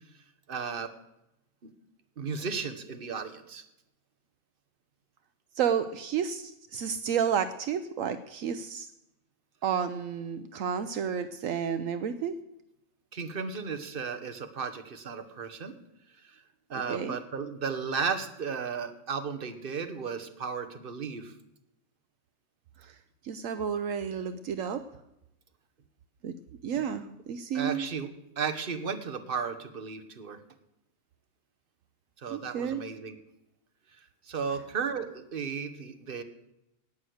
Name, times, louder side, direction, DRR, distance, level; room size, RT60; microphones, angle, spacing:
voice 1, 0.5-0.9 2.2-3.6 13.1-15.7 16.2-16.4 16.7-21.3 27.5-28.1 28.4-30.4 32.2-33.2 34.3-36.2, right 6 dB, 40° right, 8 dB, 1.3 m, -34 dB
voice 2, 5.6-8.9 9.6-12.3 16.9-17.2 22.8-23.0 23.2-24.8 26.2-26.3 26.6-27.9 32.3-32.8, right 8 dB, 75° right, 10 dB, 1.0 m, -31 dB
18.5 x 6.4 x 7.9 m, 0.88 s
omnidirectional pair, 1.4 m